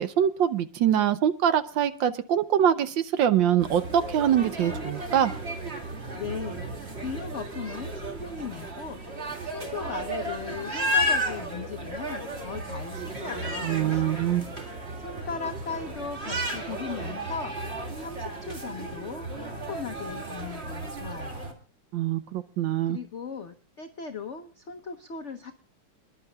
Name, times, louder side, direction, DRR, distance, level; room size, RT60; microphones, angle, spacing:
voice 1, 0.0-5.3 13.6-14.4 21.9-23.0, right 9 dB, 70° right, 12 dB, 1.3 m, -24 dB
sound 1, 3.6-21.5, equal, 30° right, 2.3 m, -33 dB
voice 2, 6.1-6.6 7.0-9.0 9.5-13.8 15.0-21.5 22.9-25.5, left 5 dB, 80° left, 7 dB, 0.6 m, -38 dB
28.5 x 11.0 x 2.3 m, 0.40 s
omnidirectional pair, 2.4 m